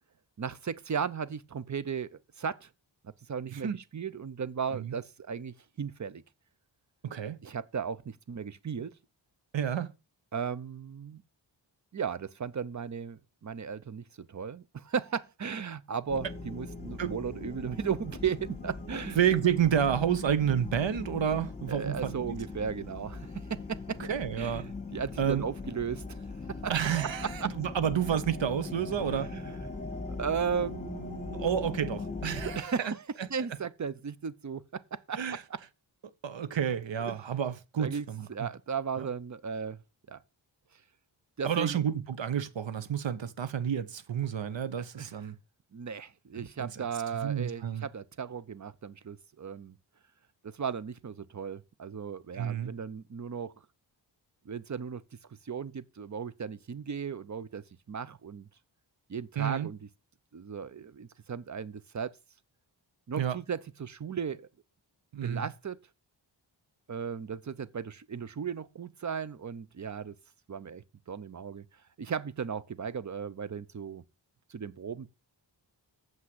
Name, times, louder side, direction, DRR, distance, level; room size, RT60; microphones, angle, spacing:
voice 1, 0.4-2.7 3.0-6.2 7.4-9.0 10.3-11.2 11.9-19.2 21.7-24.0 24.4-26.2 26.5-26.7 27.4-27.5 29.1-29.5 30.1-31.7 32.4-33.0 33.3-35.6 37.0-37.2 37.8-39.8 40.1-40.2 41.4-41.8 45.0-45.1 45.7-49.8 50.4-53.5 54.5-55.0 55.4-58.5 59.1-59.9 60.3-62.1 63.1-64.5 65.2-65.8 66.9-70.1 70.5-71.6 72.0-74.0 74.5-75.1, right 6 dB, 40° right, 0.7 m, -36 dB
voice 2, 3.5-3.8 4.7-4.9 7.0-7.4 9.5-9.9 17.0-17.2 19.2-22.3 24.0-24.6 25.2-25.4 26.7-29.3 31.3-32.9 33.2-33.3 35.2-35.4 36.2-38.5 39.0-39.1 41.4-45.3 46.4-46.8 47.2-47.8 52.3-52.7 59.4-59.7 63.2-63.4 65.1-65.5, right 9 dB, 75° right, 1.0 m, -30 dB
sound 1, 16.1-32.6, left 3 dB, 15° left, 1.9 m, -40 dB
7.4 x 6.1 x 7.8 m
wide cardioid pair, 85°, 45 cm